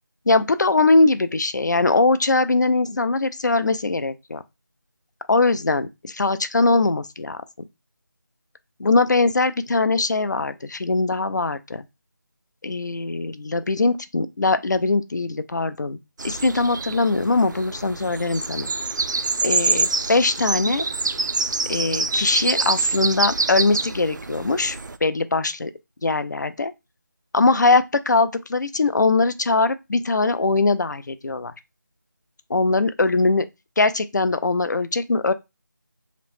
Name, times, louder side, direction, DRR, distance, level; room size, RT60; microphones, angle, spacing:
voice 1, 0.3-4.4 5.3-7.4 8.8-11.8 12.6-16.0 16.2-18.7 19.4-20.8 21.7-25.7 26.0-26.7 27.3-31.5 32.5-33.4 33.8-35.3, left 3 dB, 65° left, 0.4 m, -21 dB
sound 1, 16.2-25.0, right 3 dB, 70° right, 0.4 m, -26 dB
2.8 x 2.0 x 3.1 m
figure-of-eight pair, 180°, 11 cm